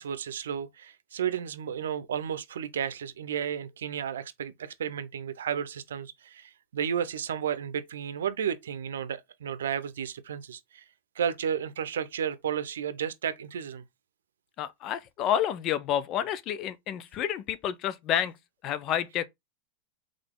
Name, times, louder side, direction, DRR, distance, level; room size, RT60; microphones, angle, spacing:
voice 1, 0.0-10.8 11.2-13.8, right 8 dB, 90° right, 0.6 m, -33 dB
voice 2, 14.6-18.3 18.6-19.3, left 10 dB, 40° left, 0.5 m, -29 dB
3.9 x 3.3 x 3.7 m
hypercardioid pair, 130°, 0 cm